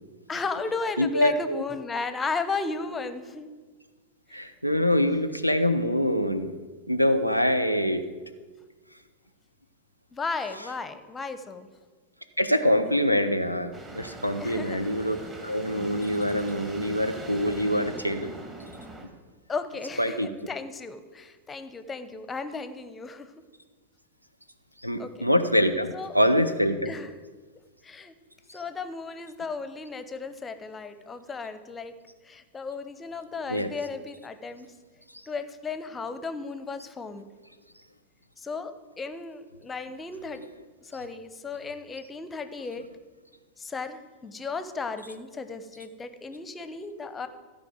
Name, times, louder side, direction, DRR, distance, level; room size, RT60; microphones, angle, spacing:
voice 1, 0.3-3.5 4.3-4.4 10.1-11.7 14.4-14.8 19.5-23.3 25.0-25.2 25.9-26.1 26.8-27.1 27.8-28.1 28.5-32.0 32.2-34.7 35.3-37.2 38.4-40.4 40.8-42.8 43.6-47.3, left 4 dB, 15° left, 11 dB, 0.8 m, -35 dB
voice 2, 1.0-1.6 4.3-6.5 6.9-8.0 12.4-18.3 20.0-20.3 24.8-26.9 33.5-33.7, equal, 90° right, 10 dB, 0.7 m, -25 dB
sound 1, 13.7-19.1, right 2 dB, 20° right, 2.1 m, -42 dB
14.5 x 5.3 x 7.7 m, 1.4 s
figure-of-eight pair, 90°, 0 cm